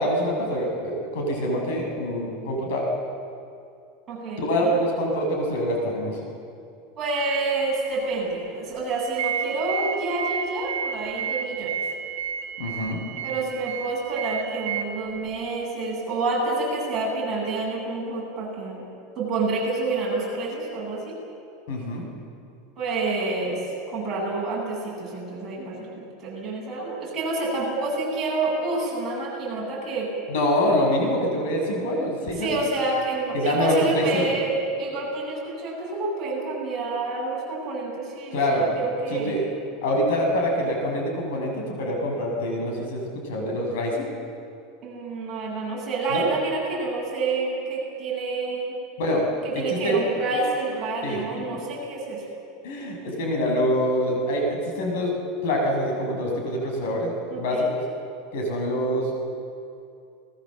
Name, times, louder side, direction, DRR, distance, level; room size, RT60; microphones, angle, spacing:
voice 1, 0.0-2.9 4.4-6.2 12.6-13.0 21.7-22.0 30.3-32.6 33.3-34.4 38.3-39.5 39.8-44.1 46.1-46.3 49.0-49.2 49.5-50.0 50.3-50.4 51.0-51.2 52.6-55.1 55.4-57.6 58.3-59.1, equal, 70° left, 1 dB, 6.4 m, -25 dB
voice 2, 4.1-4.8 7.0-11.7 13.2-18.8 19.2-21.2 22.8-23.6 23.9-30.1 32.4-34.5 34.8-39.4 44.8-48.7 49.4-52.2 57.3-57.7, right 3 dB, 20° right, -5 dB, 7.9 m, -28 dB
sound 1, 8.9-14.8, right 8 dB, 75° right, 1.9 m, -31 dB
28.5 x 19.5 x 7.6 m, 2.5 s
supercardioid pair, 165°, 0 cm